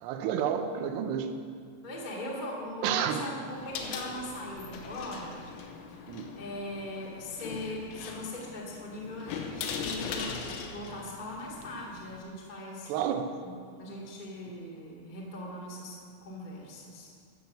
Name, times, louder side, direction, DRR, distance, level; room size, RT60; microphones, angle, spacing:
voice 1, 0.0-1.3 2.8-3.2 6.1-6.3 12.9-13.3, right 8 dB, 75° right, 5 dB, 2.8 m, -30 dB
voice 2, 1.8-5.5 5.9-6.0 6.3-12.9 13.4-13.5 13.8-17.1, left 1 dB, 35° left, -4 dB, 0.7 m, -40 dB
sound 1, 3.5-12.2, left 6 dB, 90° left, 3.3 m, -40 dB
13.0 x 7.2 x 7.5 m, 2.2 s
omnidirectional pair, 5.3 m